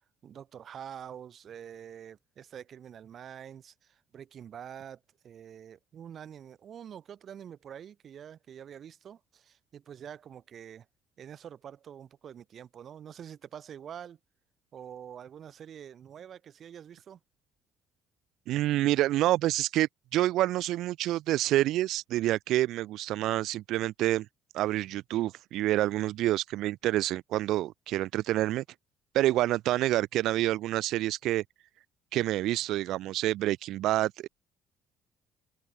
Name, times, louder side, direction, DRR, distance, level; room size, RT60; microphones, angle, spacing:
voice 1, 0.2-10.9 11.2-14.2 14.7-17.2, right 9 dB, 50° right, 3.7 m, -46 dB
voice 2, 18.5-24.3 24.5-28.6 29.1-31.4 32.1-34.3, right 15 dB, 75° right, 0.3 m, -27 dB
cardioid pair, 120°, 0 cm